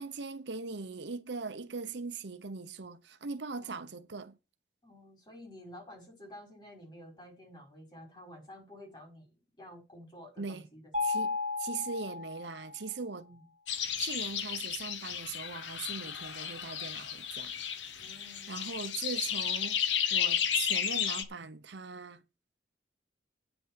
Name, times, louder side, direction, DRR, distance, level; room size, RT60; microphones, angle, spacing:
voice 1, 0.0-4.4 10.4-10.7 11.0-11.3 11.6-13.3 14.0-17.5 18.5-19.8 20.1-22.2, right 4 dB, 75° right, 0.9 m, -40 dB
voice 2, 3.5-3.9 4.8-10.8 13.2-13.5 18.0-18.6, left 1 dB, 25° left, 5.4 m, -51 dB
Mallet percussion, 10.9-12.9, left 4 dB, 35° right, 2.1 m, -34 dB
sound 1, 13.7-21.2, left 8 dB, 85° left, 1.3 m, -33 dB
9.1 x 6.1 x 7.6 m
head